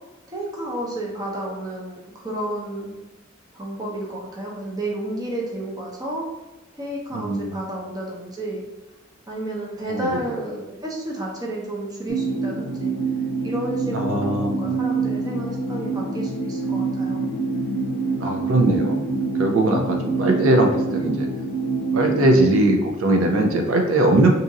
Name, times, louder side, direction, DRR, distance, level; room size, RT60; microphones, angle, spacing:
voice 1, 0.3-2.9 3.5-6.3 6.7-8.6 9.3-12.9 13.4-17.2, right 1 dB, 20° right, -3 dB, 0.6 m, -31 dB
voice 2, 7.1-7.6 9.9-10.1 13.9-14.5 18.2-19.0 19.4-21.3 21.9-24.3, right 1 dB, 80° right, 2 dB, 0.5 m, -20 dB
sound 1, 12.1-22.6, right 4 dB, 85° left, 0.5 m, -25 dB
2.7 x 2.5 x 4.0 m, 1.0 s
head